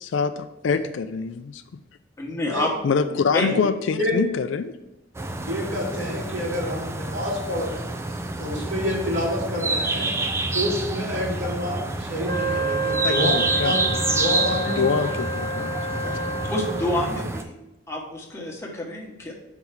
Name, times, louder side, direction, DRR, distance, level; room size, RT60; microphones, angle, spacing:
voice 1, 0.0-1.6 2.8-4.8 13.0-13.8 14.8-15.7, left 5 dB, 75° left, 10 dB, 0.4 m, -25 dB
voice 2, 2.2-2.7 3.3-3.5 16.0-16.1 16.4-17.5 17.9-19.3, left 1 dB, 15° left, -2 dB, 1.2 m, -28 dB
sound 1, 5.1-17.4, right 2 dB, 15° right, 0.4 m, -28 dB
voice 3, 5.5-7.8 8.4-10.1 10.5-13.3 13.6-14.8, left 1 dB, 80° right, -5 dB, 2.8 m, -28 dB
Wind instrument woodwind instrument, 12.2-17.0, right 2 dB, 50° right, 0.9 m, -29 dB
5.5 x 4.5 x 5.9 m, 0.91 s
head